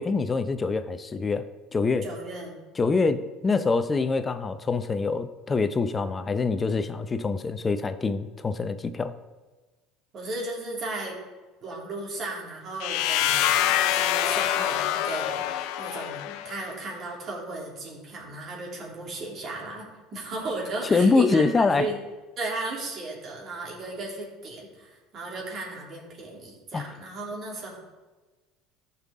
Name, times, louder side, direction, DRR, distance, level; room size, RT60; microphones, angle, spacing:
voice 1, 0.0-1.4 1.7-2.0 2.8-9.2 20.9-21.9 26.7-26.9, left 4 dB, 25° left, 12 dB, 0.7 m, -25 dB
voice 2, 2.0-2.6 10.1-11.2 11.6-13.5 13.9-15.4 15.8-22.0 22.4-27.8, right 2 dB, 45° right, -2 dB, 3.2 m, -35 dB
sound 1, 12.8-16.6, left 12 dB, 70° left, 0.5 m, -25 dB
14.0 x 5.8 x 3.7 m, 1.2 s
hypercardioid pair, 75°, 0 cm